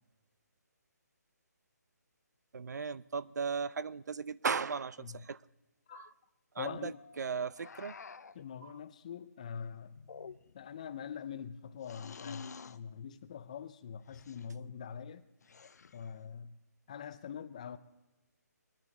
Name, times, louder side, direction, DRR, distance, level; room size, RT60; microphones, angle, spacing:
voice 1, 2.5-5.4 5.9-6.1 6.5-6.9 7.2-7.9, right 5 dB, 70° right, 0.5 m, -36 dB
voice 2, 6.6-7.0 8.3-10.1 10.5-15.2 15.9-16.6 16.9-17.8, left 7 dB, 25° left, 0.4 m, -44 dB
Mallet percussion, 6.9-9.5, left 3 dB, 45° left, 1.2 m, -63 dB
sound 1, 7.6-8.5 10.0-10.7 11.8-12.8 14.1-14.5 15.4-16.1, left 5 dB, 70° left, 0.6 m, -49 dB
22.0 x 10.0 x 4.1 m
hypercardioid pair, 170°, 9 cm